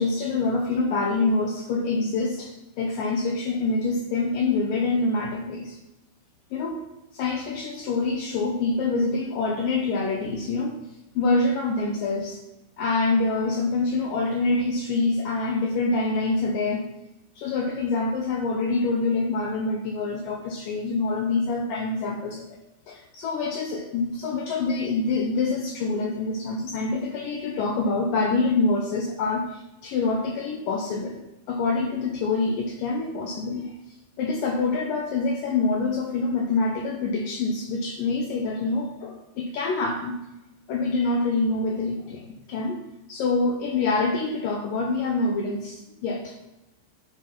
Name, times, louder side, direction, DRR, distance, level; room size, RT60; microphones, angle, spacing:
voice 1, 0.0-5.8 6.5-6.8 7.1-10.8 11.2-12.4 12.8-16.9 17.4-22.6 22.9-31.2 31.5-33.7 34.2-40.1 40.7-42.8 43.1-46.4, left 3 dB, 85° left, 1 dB, 1.9 m, -26 dB
9.9 x 6.4 x 5.6 m, 0.95 s
omnidirectional pair, 5.1 m